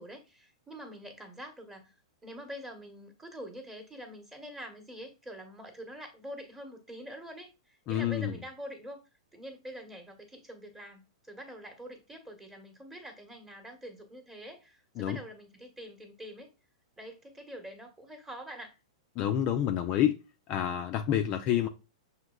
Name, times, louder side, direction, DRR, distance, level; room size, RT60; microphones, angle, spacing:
voice 1, 0.0-1.9 2.2-9.0 9.3-16.5 17.0-18.7, equal, 10° right, 1.0 m, -45 dB
voice 2, 7.9-8.3 15.0-15.2 19.2-20.2 20.5-21.7, left 10 dB, 35° left, 0.4 m, -28 dB
6.0 x 2.8 x 2.2 m
hypercardioid pair, 130°, 3 cm